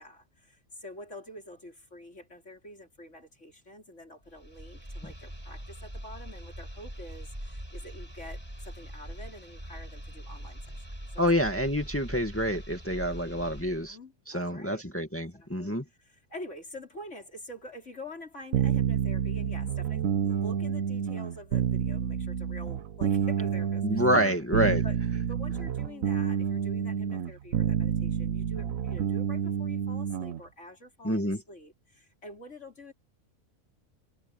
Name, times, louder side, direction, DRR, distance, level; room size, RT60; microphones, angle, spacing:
voice 1, 0.0-10.9 11.1-11.2 12.9-14.8 15.3-24.3 24.8-32.9, left 1 dB, 60° left, 5.0 m, -47 dB
sound 1, 4.2-13.9, equal, 20° right, 7.8 m, -42 dB
voice 2, 11.2-14.0 14.3-15.8 23.8-24.8 31.0-31.4, equal, 10° left, 2.1 m, -27 dB
sound 2, 18.5-30.4, right 8 dB, 80° right, 1.3 m, -29 dB
omnidirectional pair, 1.4 m